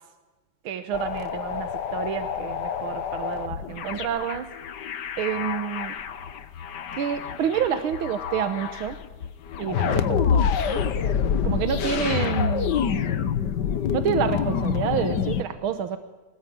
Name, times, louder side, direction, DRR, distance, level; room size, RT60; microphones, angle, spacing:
voice 1, 0.7-4.5 5.2-5.9 7.0-9.0 9.6-10.8 11.4-12.9 13.9-16.0, right 8 dB, 75° right, 10 dB, 1.9 m, -28 dB
sound 1, 0.9-15.4, left 7 dB, 60° left, 1.6 m, -27 dB
23.5 x 19.5 x 9.4 m, 1.2 s
omnidirectional pair, 2.3 m